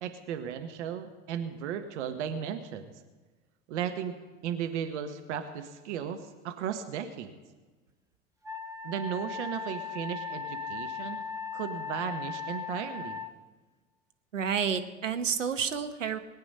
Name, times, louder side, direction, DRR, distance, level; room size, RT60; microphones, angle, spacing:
voice 1, 0.0-2.9 3.7-6.2 6.4-7.4 8.8-11.2 11.5-13.2, right 8 dB, 65° right, 8 dB, 1.3 m, -35 dB
Wind instrument woodwind instrument, 8.4-13.3, left 6 dB, 10° right, 1.1 m, -38 dB
voice 2, 14.3-16.2, right 7 dB, 85° right, 8 dB, 1.1 m, -30 dB
20.0 x 9.0 x 5.5 m, 1.3 s
figure-of-eight pair, 75°, 37 cm